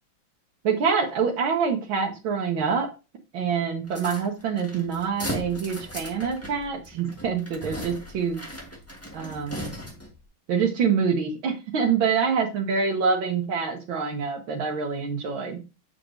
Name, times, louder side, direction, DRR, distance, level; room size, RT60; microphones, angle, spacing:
voice 1, 0.6-2.9 3.3-8.4 9.1-9.7 10.5-15.6, right 6 dB, 85° right, 0 dB, 1.9 m, -26 dB
sound 1, 3.9-10.2, equal, 10° left, 1.2 m, -38 dB
7.4 x 6.3 x 2.6 m, 0.29 s
omnidirectional pair, 2.1 m